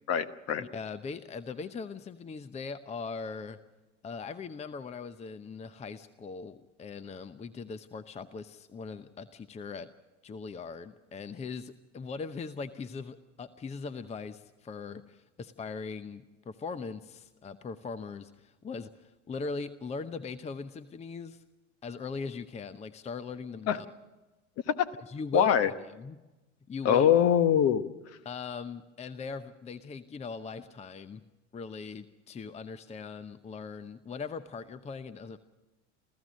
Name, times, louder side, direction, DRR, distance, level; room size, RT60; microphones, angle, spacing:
voice 1, 0.1-0.6 23.7-23.8 24.8-24.9 25.3-25.7 26.8-27.8, left 9 dB, 40° left, 12 dB, 1.2 m, -23 dB
voice 2, 0.6-3.6 4.0-9.9 10.2-21.4 21.8-23.9 25.0-26.2 26.7-27.0 28.2-31.2 31.5-35.4, left 4 dB, 20° left, 13 dB, 0.8 m, -40 dB
28.0 x 15.0 x 6.3 m, 1.1 s
hypercardioid pair, 90°, 37 cm